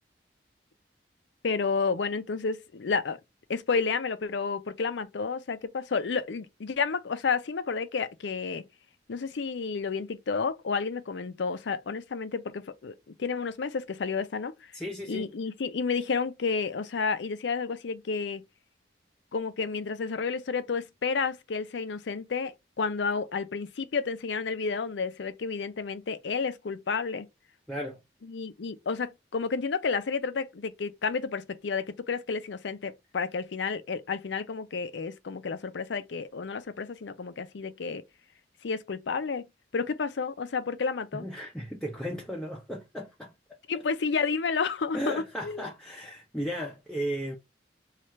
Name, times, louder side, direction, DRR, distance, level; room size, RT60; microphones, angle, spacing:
voice 1, 1.4-3.2 3.5-8.6 9.1-14.7 15.1-18.4 19.3-27.3 28.2-38.0 38.6-39.5 39.7-41.3 43.7-45.6, left 5 dB, 80° left, 0.5 m, -31 dB
voice 2, 14.7-15.3 27.7-28.0 41.1-43.3 44.9-47.4, equal, 5° left, 0.5 m, -35 dB
3.2 x 2.4 x 4.2 m
head